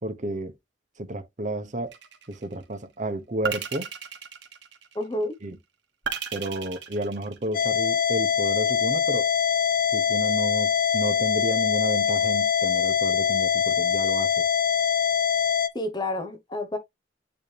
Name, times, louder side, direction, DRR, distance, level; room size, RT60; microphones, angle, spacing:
voice 1, 0.0-0.5 1.0-1.9 2.3-3.9 5.4-5.6 6.3-9.3 9.9-14.4, right 1 dB, 40° right, 1.1 m, -31 dB
sound 1, 1.9-2.5 3.4-5.1 6.1-7.8, right 7 dB, 75° right, 1.5 m, -35 dB
voice 2, 4.9-5.3 15.7-16.8, left 1 dB, 25° left, 0.9 m, -29 dB
sound 2, 7.5-15.7, left 8 dB, 50° left, 0.6 m, -23 dB
9.3 x 3.2 x 3.4 m
head